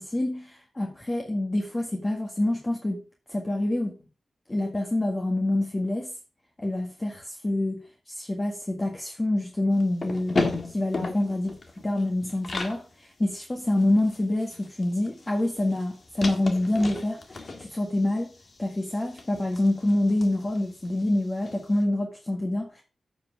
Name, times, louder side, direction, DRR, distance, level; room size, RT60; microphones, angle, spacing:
voice 1, 0.0-3.0 3.3-3.9 4.5-6.1 6.6-7.8 8.1-10.4 10.7-18.3 18.6-22.8, left 1 dB, 25° left, 1.7 m, -26 dB
sound 1, 9.7-12.8 13.2-13.3 13.6-21.6, left 3 dB, 55° left, 1.7 m, -35 dB
8.8 x 5.4 x 4.7 m
cardioid pair, 60°, 0 cm